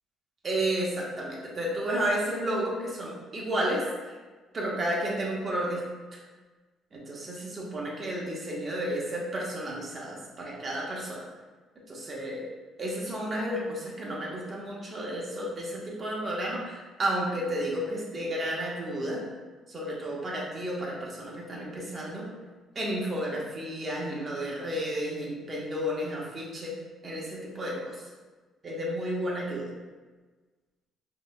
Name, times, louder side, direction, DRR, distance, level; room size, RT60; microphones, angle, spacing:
voice 1, 0.4-4.1 4.5-5.8 6.9-11.3 11.9-12.4 12.8-19.2 19.7-22.3 22.7-26.8 27.0-28.0 28.6-29.7, right 1 dB, 40° right, -3 dB, 1.2 m, -32 dB
5.0 x 2.9 x 2.2 m, 1.3 s
supercardioid pair, 80°, 0 cm